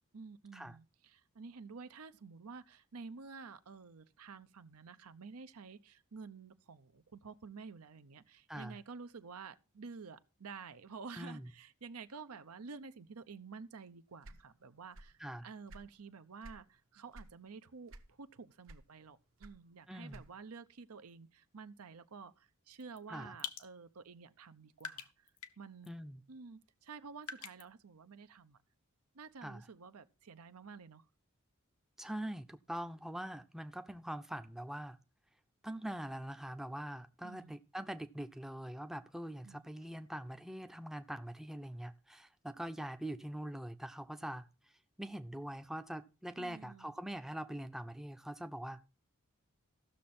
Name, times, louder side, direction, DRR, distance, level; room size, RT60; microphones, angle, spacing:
voice 1, 0.1-25.3 25.6-25.9 26.3-28.6 29.1-31.1 37.2-37.6 39.4-39.6 46.4-46.9, right 5 dB, 90° right, 0.7 m, -51 dB
sound 1, 14.2-15.2 15.5-16.7 17.1-17.4 17.9-18.3 18.6-20.5, right 1 dB, 65° right, 1.0 m, -53 dB
voice 2, 19.9-20.2 23.1-23.3 25.9-26.2 29.4-29.6 32.0-35.0 35.6-44.5 45.0-48.8, right 1 dB, ahead, 0.5 m, -43 dB
sound 2, 22.8-23.0 23.4-23.7 24.4-24.5 24.8-25.6 25.8-25.9 27.2-27.6, left 8 dB, 90° left, 0.9 m, -44 dB
15.0 x 6.4 x 4.2 m
head